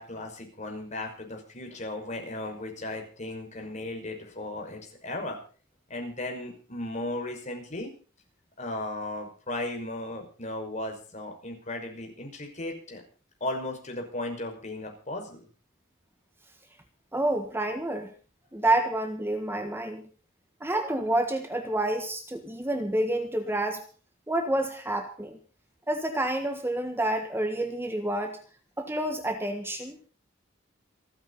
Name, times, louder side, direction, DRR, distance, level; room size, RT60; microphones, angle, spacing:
voice 1, 0.0-5.4 5.9-7.9 8.6-13.0 13.4-15.4, left 2 dB, 40° left, 3 dB, 5.8 m, -36 dB
voice 2, 17.1-18.1 18.5-20.0 20.6-23.8 24.3-25.4 25.9-28.4 28.8-30.0, right 1 dB, 10° right, 6 dB, 1.5 m, -28 dB
28.0 x 9.4 x 4.2 m, 0.39 s
head